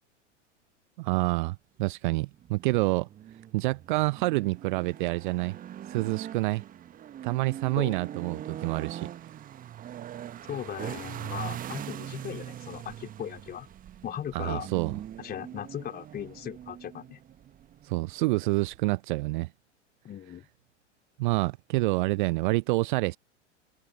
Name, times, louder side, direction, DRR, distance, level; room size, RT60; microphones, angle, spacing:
voice 1, 1.0-3.1 3.5-5.6 5.9-6.6 7.2-9.4 14.3-15.0 17.8-19.5 21.2-23.2, right 22 dB, 45° right, 0.6 m, -28 dB
sound 1, 2.3-19.0, right 11 dB, 25° right, 1.3 m, -42 dB
voice 2, 10.5-13.7 14.0-14.7 15.2-17.2 20.0-20.5, left 10 dB, 25° left, 4.1 m, -38 dB
figure-of-eight pair, 95°, 36 cm